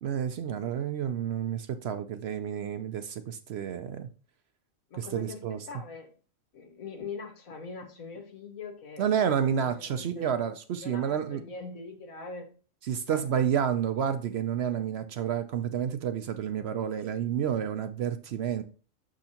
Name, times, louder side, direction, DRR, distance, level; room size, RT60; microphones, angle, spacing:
voice 1, 0.0-4.1 4.9-5.6 9.0-11.4 12.9-18.6, right 8 dB, 65° right, 0.7 m, -30 dB
voice 2, 4.9-6.1 6.5-9.3 9.6-10.3 10.8-12.5 13.1-13.5, left 4 dB, 90° left, 1.7 m, -42 dB
6.5 x 6.2 x 2.9 m
omnidirectional pair, 1.4 m